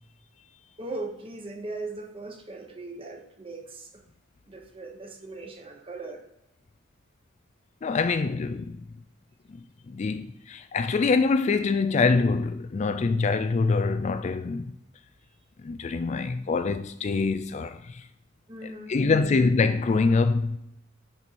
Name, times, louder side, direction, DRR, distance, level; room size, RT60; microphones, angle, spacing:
voice 1, 0.8-4.0 4.5-6.2 18.5-19.4, right 2 dB, 30° right, 1.2 m, -39 dB
voice 2, 7.8-8.8 9.5-14.6 15.6-18.1 18.6-20.6, left 4 dB, 35° left, 0.3 m, -25 dB
9.5 x 4.5 x 4.2 m
head